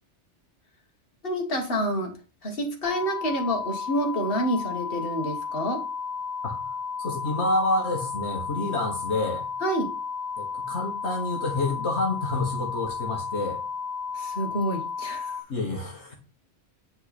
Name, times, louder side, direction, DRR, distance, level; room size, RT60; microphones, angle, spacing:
voice 1, 1.2-2.1 2.4-5.8 9.6-9.9 14.1-15.4, equal, 50° left, 2 dB, 2.0 m, -28 dB
sound 1, 2.8-15.4, left 5 dB, 20° right, 2.7 m, -33 dB
voice 2, 7.0-9.5 10.4-13.6 15.5-16.2, left 2 dB, 65° left, 0 dB, 1.9 m, -28 dB
8.7 x 5.4 x 4.3 m, 0.31 s
omnidirectional pair, 1.2 m